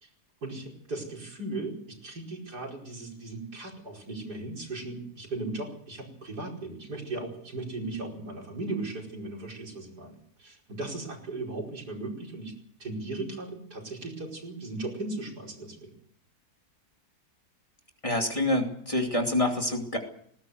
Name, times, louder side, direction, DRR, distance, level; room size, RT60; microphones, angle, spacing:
voice 1, 0.4-12.5 12.8-15.9, right 2 dB, 80° right, 0 dB, 5.6 m, -37 dB
voice 2, 18.0-20.0, left 1 dB, 20° left, 2 dB, 2.7 m, -27 dB
20.0 x 17.5 x 7.9 m, 0.64 s
omnidirectional pair, 1.7 m